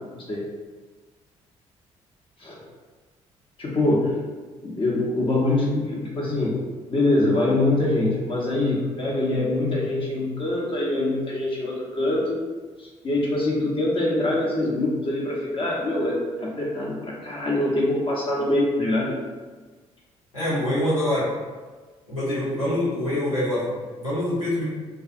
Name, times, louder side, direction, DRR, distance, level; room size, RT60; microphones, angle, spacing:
voice 1, 0.1-0.5 2.4-2.6 3.6-4.2 4.6-6.5 6.9-12.4 12.8-19.2, left 2 dB, 30° left, -4 dB, 0.6 m, -24 dB
voice 2, 20.3-21.3 22.1-24.6, left 1 dB, 85° left, -12 dB, 1.0 m, -25 dB
2.4 x 2.4 x 2.4 m, 1.4 s
figure-of-eight pair, 45°, 17 cm